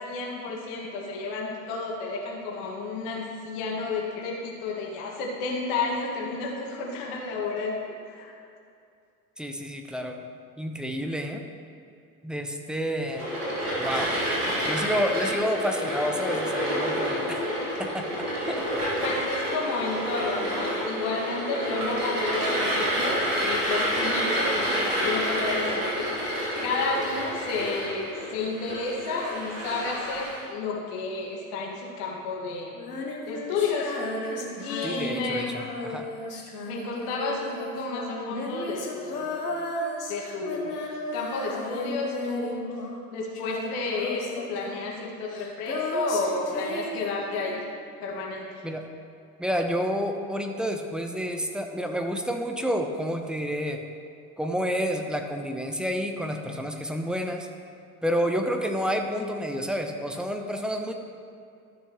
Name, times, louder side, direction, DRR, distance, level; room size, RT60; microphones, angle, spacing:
voice 1, 0.0-7.7 8.1-8.3 19.0-24.8 25.0-26.2 26.6-32.7 33.2-33.9 34.2-35.4 36.6-39.5 40.1-42.6 43.1-47.6 48.0-48.4, left 3 dB, 60° left, -2 dB, 1.9 m, -31 dB
voice 2, 9.4-10.2 10.6-11.4 12.2-13.3 13.8-14.1 14.6-17.5 17.8-18.6 18.9-19.0 34.8-36.1 48.6-48.8 49.4-53.8 54.4-57.5 58.0-60.9, equal, ahead, 4 dB, 0.8 m, -29 dB
sound 1, 13.1-30.4, equal, 85° right, 2.3 m, -29 dB
Female singing, 32.7-43.1 43.3-47.8, left 2 dB, 90° left, 1.1 m, -34 dB
13.0 x 6.5 x 3.0 m, 2.4 s
hypercardioid pair, 70°, 45 cm